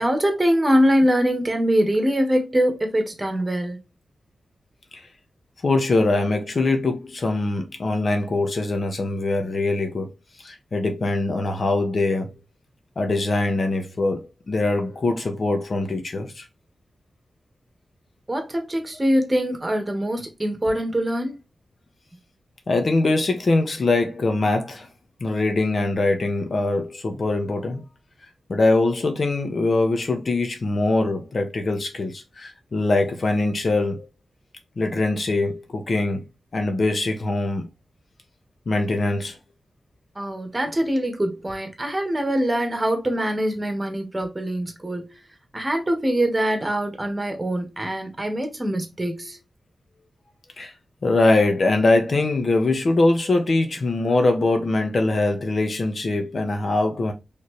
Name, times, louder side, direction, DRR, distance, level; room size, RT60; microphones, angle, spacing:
voice 1, 0.0-3.8 18.3-21.3 40.1-45.1 45.5-49.4, equal, 25° right, 1.5 m, -23 dB
voice 2, 5.6-10.1 10.4-12.3 13.0-16.4 22.7-24.9 25.2-27.8 28.5-34.1 34.8-36.2 36.5-37.6 38.7-39.4 50.6-50.7 51.0-57.1, left 2 dB, 55° left, 1.1 m, -22 dB
4.2 x 3.6 x 3.2 m
cardioid pair, 65°, 0 cm